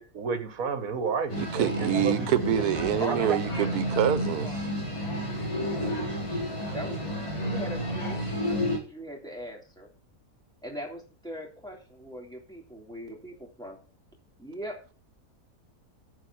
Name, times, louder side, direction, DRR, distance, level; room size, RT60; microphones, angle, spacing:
voice 1, 0.1-2.3, right 5 dB, 65° right, 1.7 m, -31 dB
sound 1, 1.3-8.8, equal, 20° left, 3.3 m, -31 dB
voice 2, 1.4-4.6, right 10 dB, 80° right, 1.3 m, -26 dB
voice 3, 3.0-6.0 6.7-7.0 7.3-9.9 10.6-13.8 14.4-14.8, equal, 5° left, 3.0 m, -41 dB
10.5 x 4.8 x 6.1 m
omnidirectional pair, 1.6 m